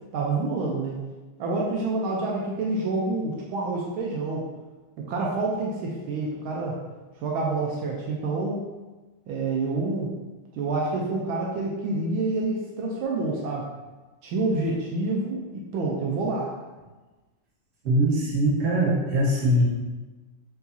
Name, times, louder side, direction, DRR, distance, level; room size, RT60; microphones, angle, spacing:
voice 1, 0.1-1.0 1.4-4.5 5.0-6.8 7.2-8.6 9.3-10.1 10.5-13.7 14.2-16.5, right 3 dB, 80° right, -2 dB, 1.4 m, -27 dB
voice 2, 17.8-19.6, right 1 dB, 45° right, -5 dB, 1.3 m, -22 dB
4.6 x 4.0 x 2.6 m, 1.2 s
omnidirectional pair, 2.3 m